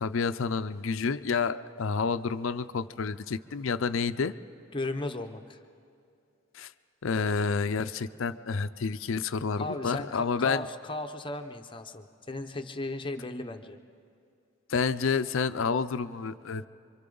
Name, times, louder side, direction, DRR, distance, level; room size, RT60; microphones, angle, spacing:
voice 1, 0.0-4.3 6.5-6.7 7.0-10.6 14.7-16.7, left 5 dB, 65° left, 13 dB, 0.5 m, -29 dB
voice 2, 4.7-5.6 9.6-13.8, left 2 dB, 25° left, 7 dB, 0.7 m, -36 dB
27.0 x 24.5 x 3.9 m, 2.6 s
head